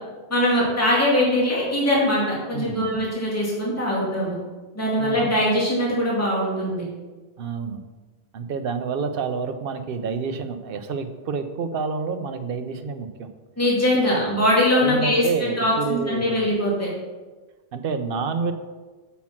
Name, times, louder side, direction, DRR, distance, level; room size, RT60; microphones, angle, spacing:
voice 1, 0.3-4.3 4.7-6.8 13.6-15.2 15.6-16.9, left 1 dB, 15° left, -6 dB, 2.3 m, -21 dB
voice 2, 2.5-3.0 5.0-5.3 7.4-7.8 8.3-13.3 14.1-14.2 14.8-16.4 17.7-18.5, right 5 dB, 60° right, 8 dB, 0.9 m, -28 dB
7.5 x 5.7 x 5.8 m, 1.3 s
omnidirectional pair, 1.1 m